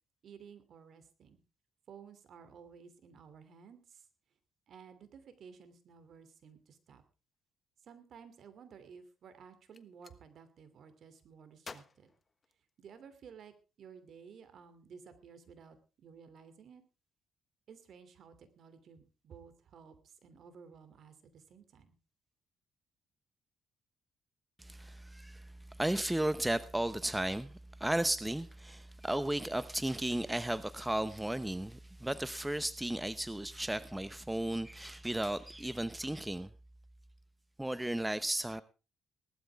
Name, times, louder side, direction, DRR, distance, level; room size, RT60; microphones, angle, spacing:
voice 1, 0.2-1.4 1.9-4.0 4.7-7.0 7.8-12.1 12.8-13.5 13.8-15.8 16.0-16.8 17.7-21.9, right 6 dB, 60° right, 11 dB, 2.8 m, -55 dB
Gunshot gunfire, 9.6-10.2 11.6-13.1, left 4 dB, 30° left, 1.3 m, -52 dB
voice 2, 24.6-36.5 37.6-38.6, right 1 dB, 10° right, 14 dB, 0.8 m, -34 dB
18.5 x 12.5 x 3.5 m, 0.31 s
cardioid pair, 90°, 0 cm